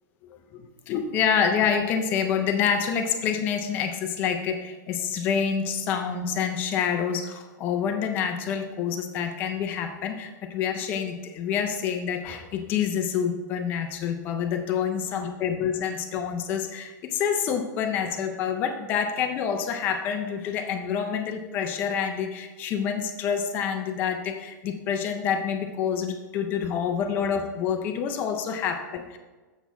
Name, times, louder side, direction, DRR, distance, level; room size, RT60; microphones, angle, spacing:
voice 1, 0.5-29.2, left 7 dB, 20° left, 6 dB, 0.4 m, -27 dB
7.1 x 6.1 x 4.5 m, 1.3 s
supercardioid pair, 175°, 10 cm